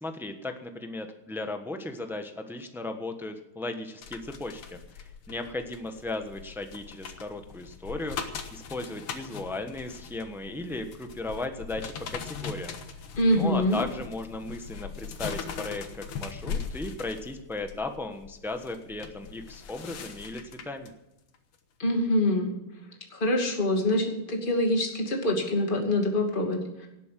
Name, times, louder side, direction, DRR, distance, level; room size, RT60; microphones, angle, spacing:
voice 1, 0.0-4.6 4.9-12.8 13.3-15.8 16.1-20.9, left 2 dB, ahead, 6 dB, 0.8 m, -36 dB
sound 1, 4.0-20.9 21.3-21.5, left 6 dB, 90° left, 2.3 m, -40 dB
voice 2, 13.2-13.8 21.8-22.5 23.1-26.9, left 1 dB, 25° left, 1 dB, 2.6 m, -25 dB
18.0 x 8.4 x 7.6 m, 0.89 s
omnidirectional pair, 2.3 m